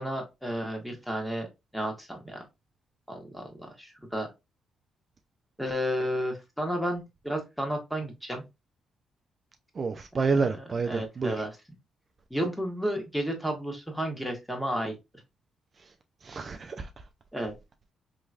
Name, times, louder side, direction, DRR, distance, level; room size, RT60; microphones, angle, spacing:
voice 1, 0.0-1.5 1.7-2.4 3.1-4.3 5.6-8.4 10.2-11.5 12.3-15.0 17.3-17.5, equal, 5° left, 1.4 m, -32 dB
voice 2, 9.8-11.4 16.2-16.9, right 4 dB, 40° right, 0.4 m, -29 dB
3.7 x 3.0 x 2.4 m
cardioid pair, 80°, 0 cm